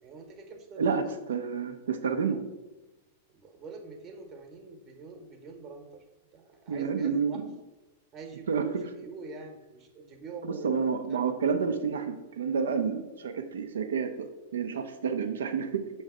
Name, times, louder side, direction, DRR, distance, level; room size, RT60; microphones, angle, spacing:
voice 1, 0.0-1.0 3.3-6.0 6.3-7.4 8.1-11.2, right 3 dB, 40° right, 4 dB, 1.1 m, -45 dB
voice 2, 0.8-2.4 6.7-7.4 8.5-8.8 10.4-15.8, right 6 dB, 80° right, 8 dB, 0.6 m, -29 dB
6.6 x 3.1 x 4.9 m, 1.1 s
hypercardioid pair, 110°, 0 cm